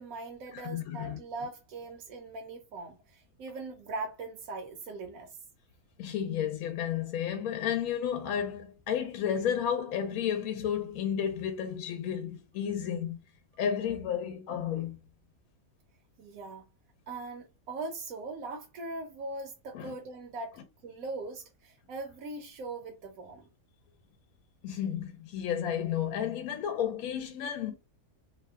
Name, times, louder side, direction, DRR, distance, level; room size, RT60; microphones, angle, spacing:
voice 1, 0.0-5.4 16.2-16.6 17.1-23.5, right 3 dB, 75° right, 1.0 m, -40 dB
voice 2, 0.5-1.2 6.0-13.2 13.6-15.0 19.7-19.9 24.6-27.7, left 9 dB, 80° left, 1.0 m, -32 dB
2.8 x 2.1 x 3.4 m
omnidirectional pair, 1.5 m